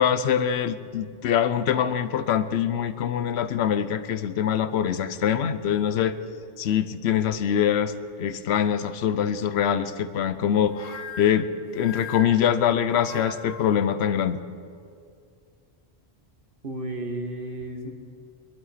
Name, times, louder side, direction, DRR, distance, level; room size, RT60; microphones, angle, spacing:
voice 1, 0.0-6.2 6.6-7.9 8.2-11.5 11.7-14.4, left 9 dB, 75° left, 12 dB, 0.9 m, -24 dB
sound 1, 10.7-13.8, left 4 dB, 40° left, 1.0 m, -40 dB
voice 2, 16.6-17.9, right 1 dB, 55° right, 4 dB, 1.5 m, -33 dB
22.0 x 12.0 x 4.2 m, 2.3 s
omnidirectional pair, 1.1 m